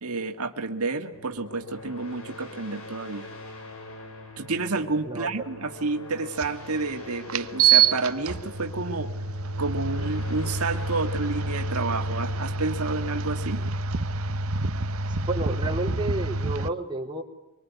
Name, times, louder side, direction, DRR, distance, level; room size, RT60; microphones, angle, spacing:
voice 1, 0.0-3.3 4.4-9.2 9.6-13.6, right 3 dB, 85° right, 6 dB, 2.0 m, -30 dB
sound 1, 1.1-14.5, left 2 dB, 65° left, 6.3 m, -43 dB
voice 2, 5.1-5.5 15.1-17.2, right 2 dB, 20° right, 1 dB, 3.7 m, -31 dB
sound 2, 6.4-6.5 7.3-16.7, right 5 dB, 70° right, 0.9 m, -27 dB
25.0 x 24.0 x 9.5 m, 0.92 s
head